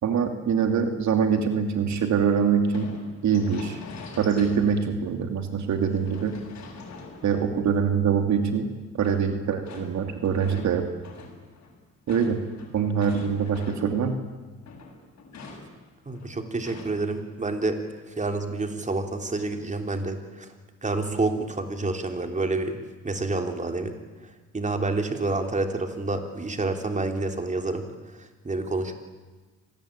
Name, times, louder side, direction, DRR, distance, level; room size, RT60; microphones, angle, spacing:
voice 1, 0.0-2.9 3.2-3.8 4.2-6.4 7.2-8.7 9.0-10.9 12.1-12.4 12.7-14.2, right 6 dB, 65° right, 6 dB, 2.6 m, -24 dB
sound 1, 2.7-5.0 5.4-8.0 9.0-14.1 14.4-17.2 17.5-17.6 18.1-18.5, left 3 dB, 60° left, 7.4 m, -45 dB
voice 2, 16.0-17.8 18.2-20.5 20.8-22.8 23.0-23.9 24.5-27.8 28.4-28.9, right 3 dB, 25° right, 5 dB, 3.4 m, -28 dB
26.0 x 19.5 x 8.9 m, 1.3 s
cardioid pair, 90°, 30 cm